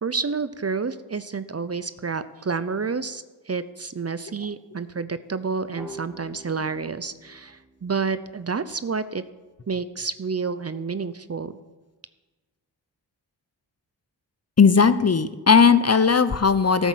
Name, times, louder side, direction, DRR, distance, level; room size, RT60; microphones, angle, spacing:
voice 1, 0.0-9.2 9.7-11.6, right 5 dB, 35° right, 13 dB, 0.7 m, -29 dB
sound 1, 5.8-9.2, left 1 dB, 10° right, 3.1 m, -46 dB
voice 2, 14.6-16.9, left 5 dB, 35° left, 13 dB, 0.8 m, -17 dB
13.5 x 8.2 x 6.4 m, 1.2 s
cardioid pair, 45°, 44 cm